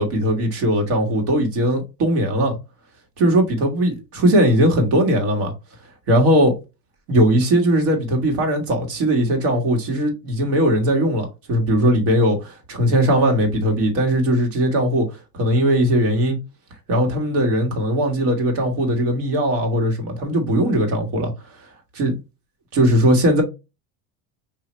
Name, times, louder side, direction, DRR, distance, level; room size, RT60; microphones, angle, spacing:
voice 1, 0.0-2.6 3.2-5.5 6.1-6.5 7.1-15.1 15.3-16.4 16.9-21.3 22.0-22.2 22.7-23.4, right 1 dB, 70° right, 1.8 m, -19 dB
5.6 x 2.8 x 3.1 m
cardioid pair, 175°, 48 cm